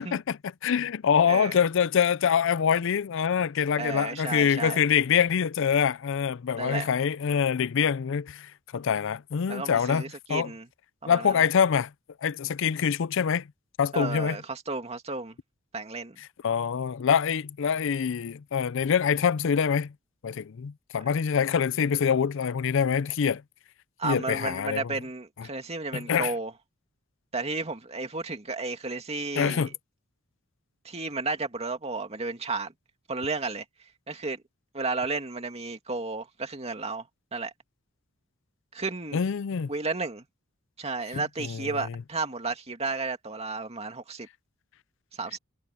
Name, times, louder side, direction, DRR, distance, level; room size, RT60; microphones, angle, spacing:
voice 1, 0.0-10.0 10.3-10.5 11.1-11.9 12.2-13.4 13.8-14.4 16.4-19.9 20.2-23.4 24.0-25.0 25.9-26.3 29.4-29.7 39.1-39.7 41.1-42.0, left 7 dB, 65° left, 0.4 m, -25 dB
voice 2, 1.3-1.6 3.8-4.8 6.5-6.9 9.5-10.7 11.0-11.5 13.9-15.4 15.7-16.2 24.0-26.5 27.3-29.7 30.8-32.7 33.1-33.6 34.1-34.4 34.7-37.0 37.3-37.5 38.7-39.2 39.7-40.2 40.8-44.3 45.2-45.4, right 3 dB, 30° right, 2.3 m, -33 dB
head